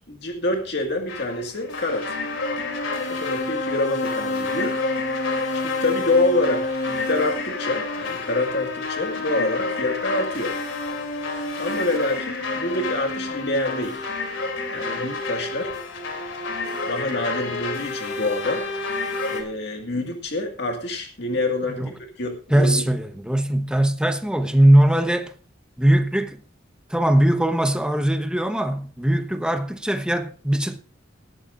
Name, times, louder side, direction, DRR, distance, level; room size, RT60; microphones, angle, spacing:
voice 1, 0.1-2.2 3.1-4.8 5.6-10.6 11.6-14.0 14.7-15.7 16.9-18.7 19.3-22.8, left 2 dB, 60° left, 2.0 m, -26 dB
sound 1, 1.1-19.4, left 3 dB, 80° left, 3.1 m, -28 dB
voice 2, 22.5-25.3 25.8-26.4 26.9-30.8, right 1 dB, 5° right, 1.0 m, -20 dB
18.5 x 13.0 x 2.6 m
head